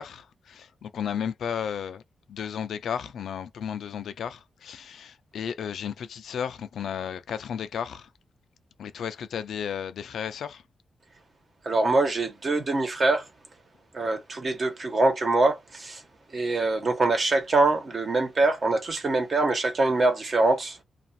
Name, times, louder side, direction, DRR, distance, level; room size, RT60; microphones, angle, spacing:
voice 1, 0.0-2.0 2.3-8.1 8.8-10.6, left 8 dB, 85° left, 0.4 m, -33 dB
voice 2, 11.6-13.3 13.9-16.0 16.3-20.8, right 2 dB, 45° right, 1.1 m, -24 dB
2.5 x 2.3 x 2.6 m
cardioid pair, 90°, 0 cm